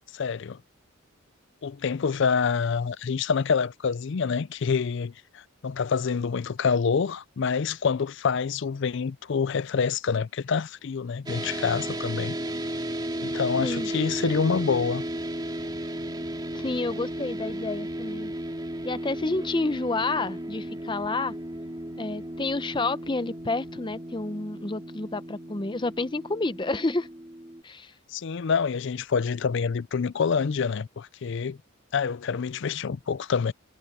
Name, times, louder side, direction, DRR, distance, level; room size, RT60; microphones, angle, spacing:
voice 1, 0.1-0.6 1.6-12.4 13.2-15.0 28.1-31.6 31.9-33.5, left 5 dB, 55° left, 0.4 m, -27 dB
sound 1, 11.3-27.6, right 1 dB, 20° right, 2.5 m, -34 dB
voice 2, 13.6-13.9 16.5-18.3 18.8-21.3 22.0-27.1 27.6-27.9, left 2 dB, 20° left, 0.7 m, -29 dB
head